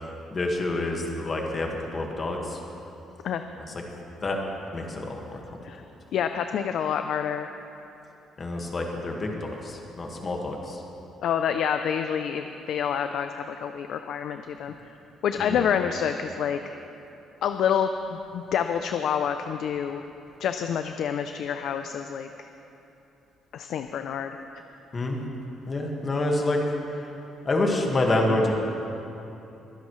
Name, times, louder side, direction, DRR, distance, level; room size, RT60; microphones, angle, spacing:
voice 1, 0.3-2.6 3.6-3.7 4.2-4.4 4.7-5.4 8.4-10.8 15.4-15.6 24.9-25.2 25.7-26.6 27.4-28.5, left 2 dB, 30° left, 1 dB, 1.8 m, -27 dB
voice 2, 6.1-7.5 11.2-14.7 15.2-16.6 17.4-20.0 20.4-22.3 23.5-24.3, left 8 dB, 65° left, 7 dB, 0.5 m, -27 dB
23.0 x 10.0 x 3.2 m, 3.0 s
cardioid pair, 120°, 0 cm